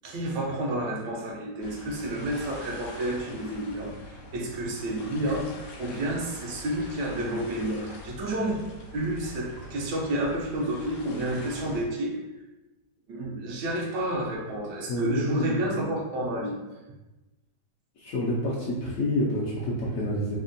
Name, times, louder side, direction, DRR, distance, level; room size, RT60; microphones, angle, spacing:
voice 1, 0.0-5.5 5.8-8.6 8.9-12.2 13.1-16.6, right 1 dB, 80° right, 0 dB, 1.2 m, -30 dB
sound 1, 1.6-11.9, left 1 dB, 85° left, 1.2 m, -44 dB
voice 2, 14.9-15.6 18.0-20.4, left 1 dB, 70° left, -6 dB, 0.9 m, -28 dB
3.4 x 2.2 x 2.5 m, 1.1 s
omnidirectional pair, 1.8 m